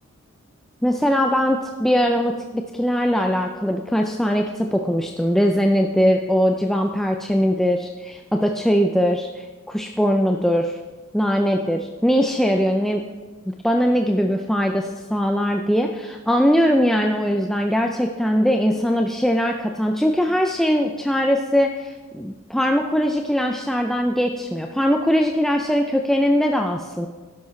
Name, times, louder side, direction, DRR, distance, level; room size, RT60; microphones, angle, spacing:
voice 1, 0.8-10.7 11.1-13.0 13.5-27.1, equal, ahead, 2 dB, 0.4 m, -21 dB
12.0 x 10.5 x 3.2 m, 1.3 s
head